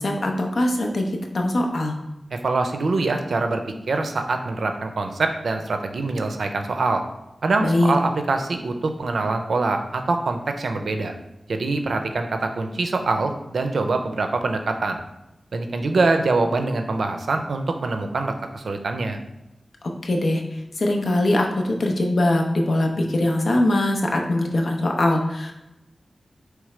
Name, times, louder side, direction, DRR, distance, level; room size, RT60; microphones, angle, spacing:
voice 1, 0.0-2.0 7.6-7.9 19.8-25.5, left 1 dB, 65° left, 2 dB, 0.6 m, -22 dB
voice 2, 2.3-7.0 7.4-11.1 11.5-15.0 15.5-19.2, right 3 dB, 80° right, 5 dB, 0.4 m, -24 dB
4.8 x 3.3 x 3.2 m, 0.93 s
wide cardioid pair, 115°, 0 cm